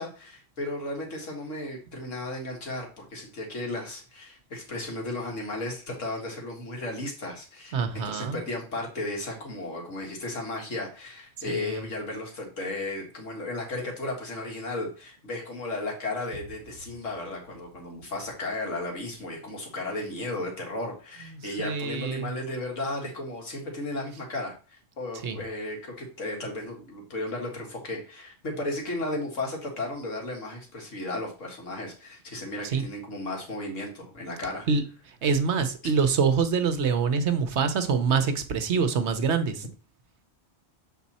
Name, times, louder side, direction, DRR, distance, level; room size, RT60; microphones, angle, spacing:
voice 1, 0.0-34.7 35.8-35.9, left 2 dB, 75° left, 2.2 m, -34 dB
voice 2, 7.7-8.4 11.5-11.8 21.6-22.3 25.2-25.4 32.7-32.8 34.7-34.8 35.2-39.6, right 5 dB, 65° right, 1.1 m, -25 dB
7.2 x 4.1 x 4.2 m
omnidirectional pair, 1.3 m